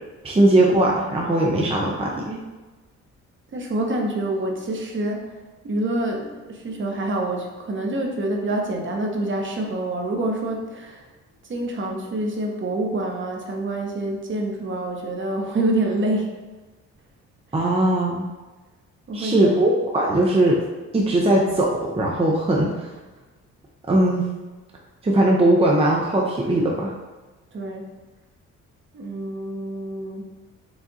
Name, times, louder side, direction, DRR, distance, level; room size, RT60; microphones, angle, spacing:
voice 1, 0.2-2.4 17.5-18.2 19.1-20.6 20.9-22.9 23.9-24.3 25.0-26.9, right 1 dB, 20° right, -2 dB, 0.6 m, -19 dB
voice 2, 3.5-5.3 5.6-11.1 11.5-16.3 19.1-19.6 27.5-27.9 28.9-30.3, right 1 dB, 40° right, 1 dB, 1.0 m, -26 dB
4.9 x 2.5 x 4.0 m, 1.2 s
cardioid pair, 90°, 30 cm